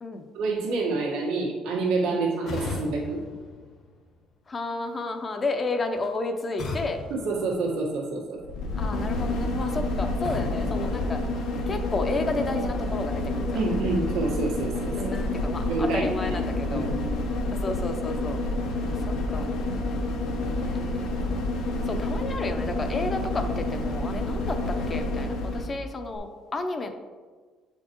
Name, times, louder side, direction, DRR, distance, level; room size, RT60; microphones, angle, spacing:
voice 1, 0.3-3.2 7.1-8.4 13.5-15.1 15.7-16.4 16.7-17.2, right 3 dB, 90° right, -3 dB, 1.4 m, -28 dB
sound 1, 2.4-4.4 6.6-8.3 10.2-11.8, left 2 dB, 50° left, 1.0 m, -38 dB
voice 2, 4.5-7.0 8.8-11.2 11.7-13.6 15.0-16.9 17.5-18.4 18.8-19.5 20.6-21.2 21.8-26.9, left 3 dB, 25° left, 6 dB, 0.6 m, -32 dB
sound 2, 8.4-25.8 26.1-26.2, left 2 dB, 80° left, 0.8 m, -29 dB
8.2 x 4.4 x 3.0 m, 1.5 s
cardioid pair, 130°, 0 cm